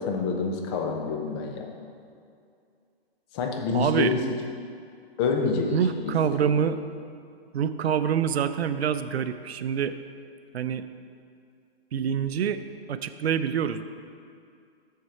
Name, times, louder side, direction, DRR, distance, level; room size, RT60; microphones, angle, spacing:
voice 1, 0.0-1.7 3.3-4.2 5.2-5.7 6.0-6.1, left 5 dB, 25° left, 2 dB, 0.7 m, -27 dB
voice 2, 3.7-4.1 5.7-6.8 7.5-9.9 10.5-10.8 11.9-12.6 12.9-13.8, right 8 dB, 85° right, 12 dB, 0.5 m, -26 dB
7.9 x 6.6 x 4.3 m, 2.4 s
hypercardioid pair, 150°, 31 cm